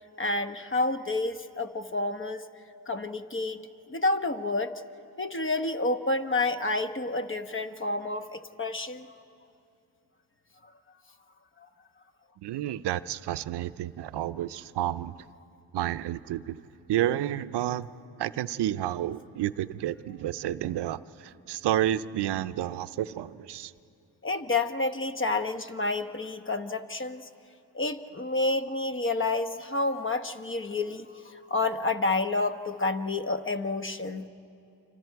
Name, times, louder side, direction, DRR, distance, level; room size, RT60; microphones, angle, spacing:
voice 1, 0.2-2.4 2.9-4.8 5.2-9.1 10.6-10.7 11.6-11.7 24.2-27.3 27.7-34.3, left 2 dB, 30° left, 8 dB, 1.0 m, -29 dB
voice 2, 12.4-15.1 15.7-16.6 16.9-17.9 18.2-23.7, right 12 dB, 85° right, 14 dB, 0.6 m, -30 dB
30.0 x 25.5 x 4.6 m, 2.7 s
cardioid pair, 70°, 40 cm